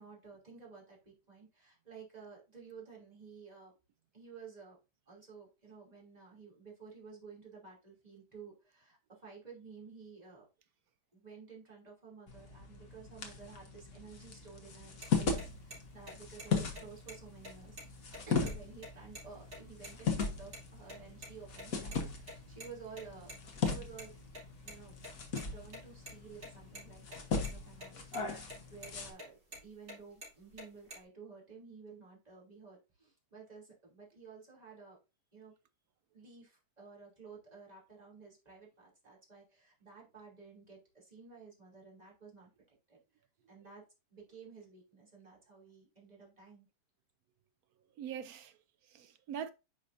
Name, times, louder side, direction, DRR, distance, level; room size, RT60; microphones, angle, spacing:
voice 1, 0.0-3.7 4.1-4.8 5.1-10.5 11.1-17.8 18.3-23.3 23.6-24.1 24.6-25.0 25.5-35.0 35.3-35.5 36.1-43.0 43.5-43.8 44.1-46.7, right 5 dB, 25° right, 2.8 m, -53 dB
sound 1, 12.3-29.1, left 5 dB, 60° left, 1.6 m, -38 dB
sound 2, 15.0-15.1 15.4-15.5 15.7-15.8 16.1-16.5 16.8-16.9 17.1-17.2 17.4-18.5 18.8-18.9 19.1-19.3 19.5-19.9 20.2-20.6 20.9-22.0 22.2-24.7 25.0-26.8 27.1-27.2 27.4-27.9 28.1-28.6 28.8-29.9 30.2-31.0, equal, 40° right, 3.5 m, -47 dB
voice 2, 48.0-49.5, right 8 dB, 70° right, 1.0 m, -43 dB
9.9 x 5.0 x 2.6 m
omnidirectional pair, 1.7 m